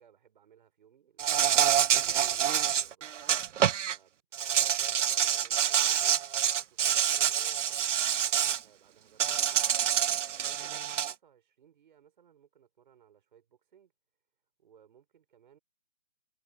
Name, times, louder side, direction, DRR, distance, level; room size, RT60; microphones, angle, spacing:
voice 1, 0.0-3.1 3.8-4.2 4.7-6.1 6.6-7.9 8.6-9.7 10.0-13.9 14.6-15.6, right 9 dB, 40° right, 5.3 m, -61 dB
Insect, 1.2-4.0 4.3-8.6 9.2-11.1, right 9 dB, 70° right, 0.6 m, -27 dB
hypercardioid pair, 165°, 38 cm